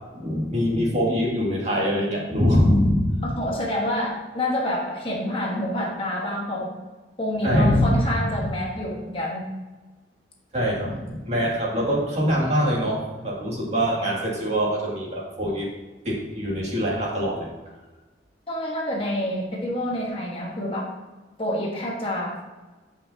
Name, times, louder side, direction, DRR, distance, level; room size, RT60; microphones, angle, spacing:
voice 1, 0.1-3.3 7.4-8.0 10.5-15.7 16.0-17.5, equal, 35° right, -5 dB, 2.3 m, -23 dB
voice 2, 3.4-6.7 7.2-9.5 10.8-11.0 18.5-20.8 21.4-22.4, left 1 dB, 30° left, -2 dB, 1.4 m, -28 dB
15.0 x 5.6 x 2.8 m, 1.2 s
head